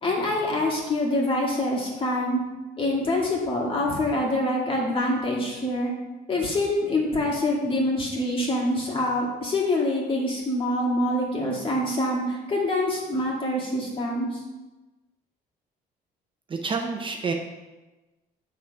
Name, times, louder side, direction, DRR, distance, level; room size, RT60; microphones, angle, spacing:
voice 1, 0.0-2.4 2.8-5.9 6.3-14.4, left 1 dB, 30° left, -2 dB, 2.2 m, -25 dB
voice 2, 16.5-17.3, right 4 dB, 30° right, 2 dB, 0.7 m, -28 dB
7.2 x 3.9 x 5.6 m, 1.1 s
cardioid pair, 110°, 17 cm